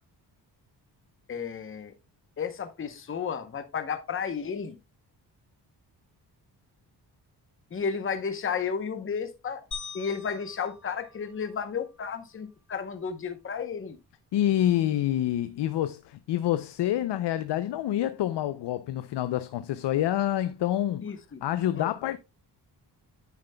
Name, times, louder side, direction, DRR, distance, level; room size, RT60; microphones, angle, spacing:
voice 1, 1.3-1.9 2.4-4.8 7.7-9.6 9.9-14.0 21.0-21.4 21.7-21.9, left 6 dB, 30° left, 0.9 m, -33 dB
sound 1, 9.7-12.1, left 5 dB, 45° left, 3.5 m, -43 dB
voice 2, 14.3-21.1 21.4-22.2, left 12 dB, 90° left, 0.6 m, -27 dB
9.3 x 8.8 x 2.2 m
wide cardioid pair, 155°, 41 cm